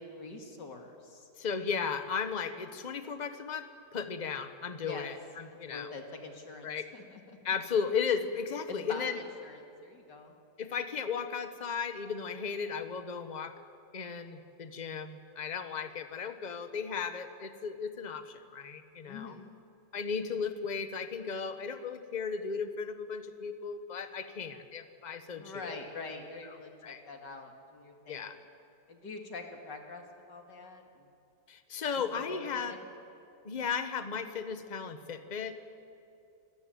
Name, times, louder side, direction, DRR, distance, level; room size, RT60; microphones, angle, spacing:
voice 1, 0.0-1.3 4.8-5.1 5.5-6.7 6.9-7.4 8.7-10.3 19.1-19.5 25.3-28.3 28.9-31.1 32.1-32.8, left 3 dB, 80° left, 3 dB, 2.8 m, -45 dB
voice 2, 1.4-5.9 6.6-6.9 7.4-9.2 10.6-13.5 13.9-19.3 19.9-25.8 26.8-27.0 28.1-28.3 31.5-32.7 33.4-35.6, left 6 dB, 30° left, 9 dB, 1.0 m, -35 dB
25.5 x 14.5 x 9.2 m, 2.6 s
omnidirectional pair, 1.8 m